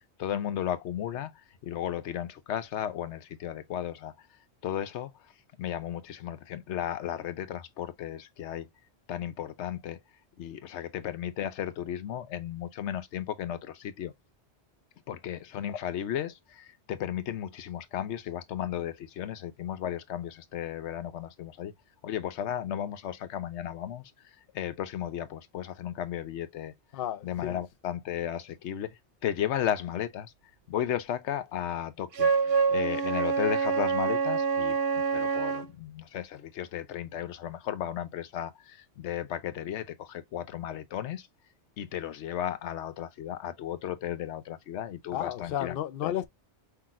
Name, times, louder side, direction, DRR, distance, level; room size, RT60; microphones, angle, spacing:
voice 1, 0.2-4.1 4.6-5.1 5.6-8.7 9.1-10.0 10.4-14.1 15.1-21.7 22.0-26.7 27.2-30.3 30.7-41.3 41.8-45.8 46.0-46.1, left 10 dB, 90° left, 0.9 m, -34 dB
voice 2, 26.9-27.6 45.1-46.3, left 11 dB, 60° left, 0.7 m, -33 dB
Wind instrument woodwind instrument, 32.1-35.7, right 5 dB, 65° right, 0.8 m, -26 dB
5.7 x 2.9 x 2.4 m
omnidirectional pair, 1.1 m